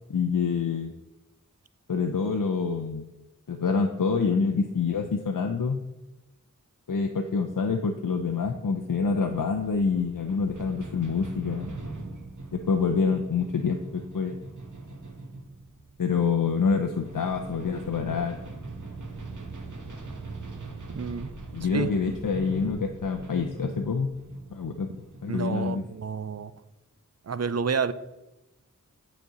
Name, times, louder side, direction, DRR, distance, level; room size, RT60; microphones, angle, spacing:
voice 1, 0.1-0.9 1.9-3.1 3.5-5.8 6.9-11.7 12.5-14.4 16.0-18.4 21.5-24.1 24.5-24.9 25.2-25.8, left 5 dB, 85° left, 4 dB, 0.7 m, -26 dB
sound 1, 8.9-26.4, right 3 dB, 70° right, 1.2 m, -41 dB
voice 2, 20.9-21.3 21.7-21.9 25.3-26.5 27.3-27.9, right 6 dB, 55° right, 15 dB, 0.5 m, -29 dB
9.2 x 4.3 x 6.8 m, 1.0 s
wide cardioid pair, 65°, 32 cm